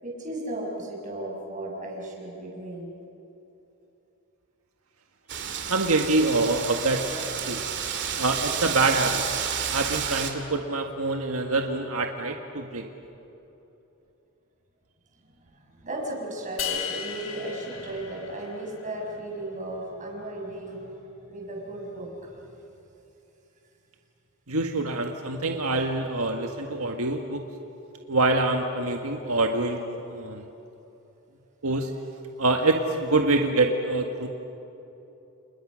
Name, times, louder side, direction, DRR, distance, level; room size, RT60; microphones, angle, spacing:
voice 1, 0.0-2.9 5.2-5.4 15.5-22.6, right 1 dB, 35° right, -1 dB, 6.6 m, -36 dB
Wind, 5.3-10.3, right 8 dB, 55° right, 2.5 m, -30 dB
voice 2, 5.7-7.0 7.5-7.6 8.2-9.2 9.7-12.8 24.5-27.4 28.1-29.8 30.1-30.4 31.6-31.9 32.4-34.3, right 2 dB, 85° right, 3 dB, 1.7 m, -25 dB
sound 1, 16.6-18.9, left 8 dB, 65° left, 2.8 m, -35 dB
30.0 x 29.5 x 6.4 m, 3.0 s
head